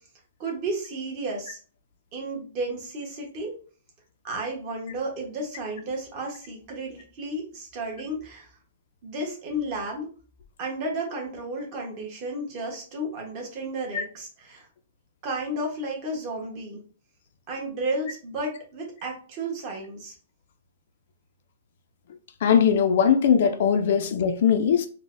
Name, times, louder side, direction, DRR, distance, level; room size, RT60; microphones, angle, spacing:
voice 1, 0.4-1.6 2.1-3.5 4.2-8.6 9.0-10.1 10.6-14.7 15.2-16.8 17.5-20.1, right 1 dB, 30° right, 0.9 m, -32 dB
voice 2, 22.4-24.9, left 7 dB, 50° left, 0.3 m, -20 dB
3.9 x 2.1 x 2.5 m
hypercardioid pair, 175°, 0 cm